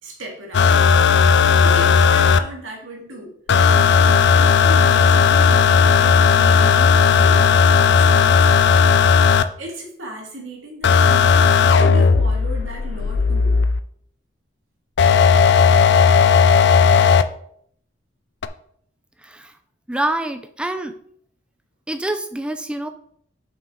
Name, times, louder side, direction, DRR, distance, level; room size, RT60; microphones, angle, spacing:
voice 1, 0.0-1.0 1.6-3.4 3.8-8.5 9.6-13.6, equal, 70° right, -1 dB, 2.1 m, -36 dB
sound 1, 0.5-2.4 3.5-9.4 10.8-13.8 15.0-17.2 18.4-18.5, left 6 dB, 55° left, 0.4 m, -14 dB
voice 2, 19.2-19.6 19.9-20.9 21.9-22.9, right 1 dB, 5° right, 7 dB, 0.4 m, -26 dB
7.2 x 6.0 x 3.8 m, 0.65 s
head